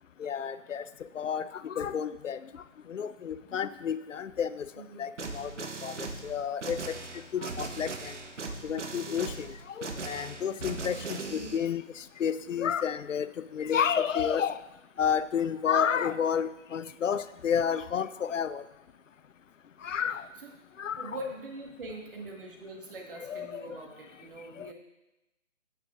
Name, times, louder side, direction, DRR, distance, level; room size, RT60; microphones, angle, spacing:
voice 1, 0.2-0.8 1.2-2.4 2.9-4.7 5.0-5.5 5.8-6.0 6.2-6.8 7.3-8.1 8.6-9.5 9.8-11.8 12.2-13.3 13.5-14.6 15.0-18.6 19.8-20.2 20.8-21.1 23.2-23.6 24.6-24.7, left 8 dB, 80° left, 15 dB, 0.6 m, -30 dB
voice 2, 3.2-3.5 4.7-5.1 11.3-11.6 20.1-20.5 21.0-24.7, right 1 dB, 45° right, 1 dB, 1.6 m, -43 dB
sound 1, 5.2-11.6, right 3 dB, 70° right, 1.4 m, -39 dB
10.0 x 8.2 x 3.6 m, 0.97 s
hypercardioid pair, 160°, 37 cm